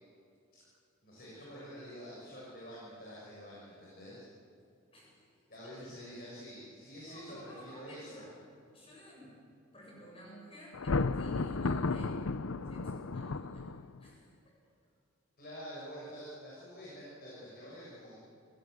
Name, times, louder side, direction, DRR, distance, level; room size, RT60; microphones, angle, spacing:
voice 1, 1.0-4.3 5.5-8.3 15.4-18.2, equal, 45° left, -6 dB, 6.7 m, -47 dB
voice 2, 4.9-6.0 7.0-13.7 14.0-14.5, equal, 25° left, -3 dB, 7.8 m, -53 dB
Thunder, 10.7-14.1, left 3 dB, 80° left, 0.7 m, -33 dB
28.5 x 17.5 x 8.0 m, 2.6 s
head